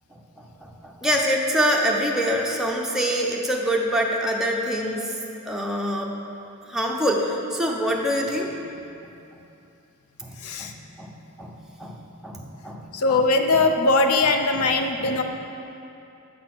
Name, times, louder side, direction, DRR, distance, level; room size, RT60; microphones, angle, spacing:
voice 1, 0.1-5.1 5.5-6.1 6.7-8.6 10.2-12.8 13.1-13.2 13.5-13.6 14.5-14.6 15.0-15.2, equal, ahead, -2 dB, 0.6 m, -26 dB
voice 2, 12.9-15.2, left 3 dB, 80° left, 6 dB, 0.5 m, -20 dB
7.5 x 4.0 x 6.0 m, 2.7 s
head